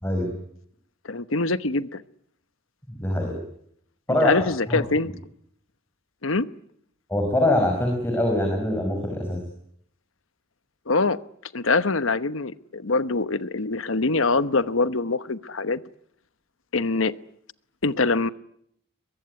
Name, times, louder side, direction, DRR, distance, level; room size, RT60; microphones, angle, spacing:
voice 1, 1.0-2.0 4.2-5.1 6.2-6.5 10.9-11.2 11.5-15.8 16.7-17.1 17.8-18.3, left 3 dB, 70° left, 13 dB, 1.1 m, -24 dB
voice 2, 3.0-3.4 4.1-4.4 4.7-4.8 7.1-9.4, left 1 dB, 10° left, 2 dB, 5.0 m, -23 dB
23.0 x 22.5 x 9.7 m, 0.70 s
head